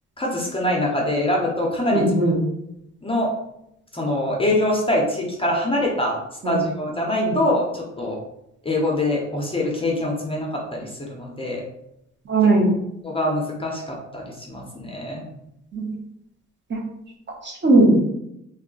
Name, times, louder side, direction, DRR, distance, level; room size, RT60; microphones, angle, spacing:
voice 1, 0.2-2.3 3.0-3.3 3.9-6.2 6.5-8.2 8.6-11.6 13.0-15.2, left 1 dB, 20° left, -2 dB, 0.6 m, -24 dB
voice 2, 1.9-2.3 6.4-6.6 7.2-7.3 12.3-12.7 15.7-15.9 16.7-16.8 17.4-18.0, right 2 dB, 40° right, -2 dB, 0.9 m, -18 dB
2.3 x 2.1 x 3.7 m, 0.81 s
cardioid pair, 90°, 30 cm